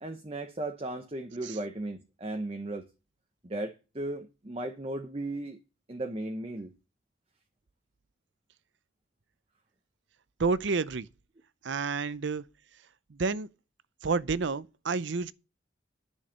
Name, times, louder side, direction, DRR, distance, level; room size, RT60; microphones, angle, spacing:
voice 1, 0.0-2.9 3.4-5.6 5.9-6.7, right 1 dB, 30° right, 0.9 m, -36 dB
voice 2, 10.4-11.1 11.6-12.4 13.1-13.5 14.0-15.3, right 4 dB, 70° right, 0.6 m, -29 dB
10.5 x 6.4 x 6.4 m
head